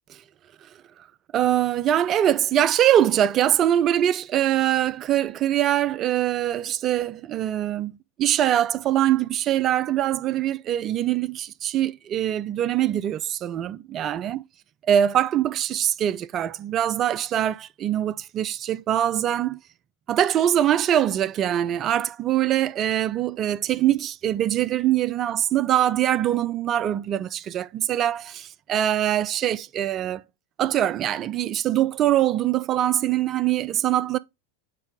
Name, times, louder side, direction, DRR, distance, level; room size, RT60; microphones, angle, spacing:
voice 1, 1.3-14.4 14.9-19.6 20.1-30.2 30.6-34.2, right 11 dB, 30° right, 0.4 m, -23 dB
9.0 x 3.5 x 3.6 m
figure-of-eight pair, 90°, 0 cm